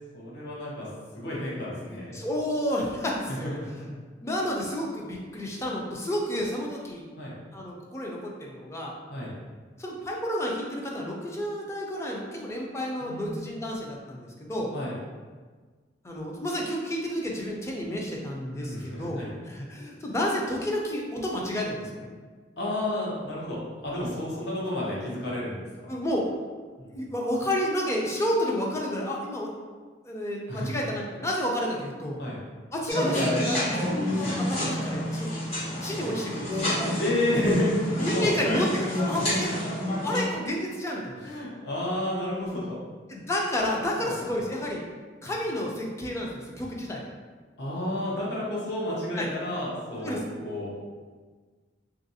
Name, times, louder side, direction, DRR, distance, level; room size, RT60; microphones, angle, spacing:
voice 1, 0.1-0.9 1.1-2.1 3.1-3.9 7.2-7.3 9.1-9.3 13.0-13.4 14.7-14.9 18.5-19.3 22.6-25.6 26.8-26.9 30.5-30.7 32.2-32.4 34.1-34.3 35.8-36.0 37.0-38.3 39.3-39.4 41.2-42.8 44.0-44.1 47.6-50.8, left 1 dB, 65° left, -6 dB, 0.8 m, -31 dB
voice 2, 2.1-3.6 4.2-7.0 7.5-8.9 9.8-14.7 16.0-22.1 25.9-26.3 26.9-29.5 30.0-32.2 32.7-35.3 35.8-36.7 38.0-39.5 40.0-41.4 43.1-44.8 45.2-47.1 49.2-49.3 50.0-50.2, left 1 dB, 15° left, -2 dB, 0.4 m, -30 dB
sound 1, 32.9-40.2, left 1 dB, 35° left, 1.3 m, -28 dB
3.0 x 2.5 x 2.7 m, 1.4 s
head